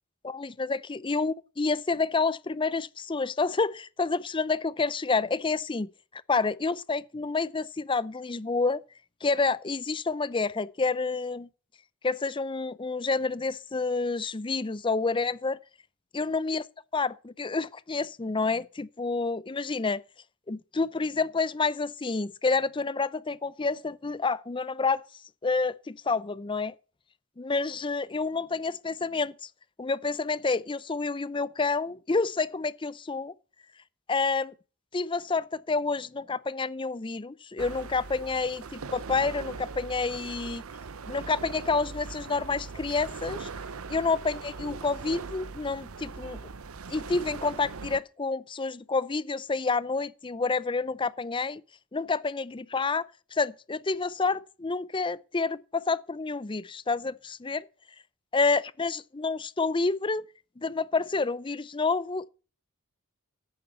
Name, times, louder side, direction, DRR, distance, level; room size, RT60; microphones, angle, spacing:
voice 1, 0.2-5.9 6.3-8.8 9.2-11.5 12.0-15.6 16.1-16.6 16.9-20.0 20.5-25.0 25.4-26.7 27.4-29.5 29.8-33.3 34.1-34.5 34.9-40.6 41.1-43.5 43.9-46.4 46.9-51.6 51.9-57.6 58.3-60.3 60.6-62.3, left 4 dB, 25° left, 0.5 m, -29 dB
sound 1, 37.6-48.0, right 4 dB, 80° right, 0.8 m, -40 dB
10.5 x 8.8 x 6.7 m
head